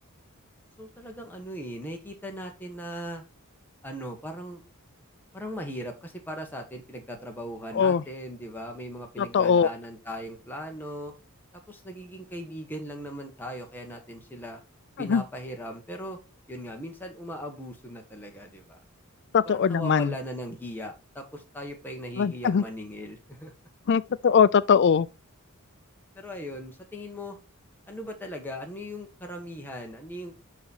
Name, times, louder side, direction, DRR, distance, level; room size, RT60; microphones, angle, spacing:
voice 1, 0.8-3.2 3.8-4.6 5.3-11.1 11.7-14.6 15.0-16.2 16.5-18.8 19.4-23.5 26.1-27.4 27.9-30.4, equal, 10° left, 1.2 m, -38 dB
voice 2, 9.2-9.7 15.0-15.2 19.3-20.1 22.2-22.6 23.9-25.1, left 6 dB, 50° left, 0.3 m, -21 dB
5.1 x 4.9 x 4.1 m
head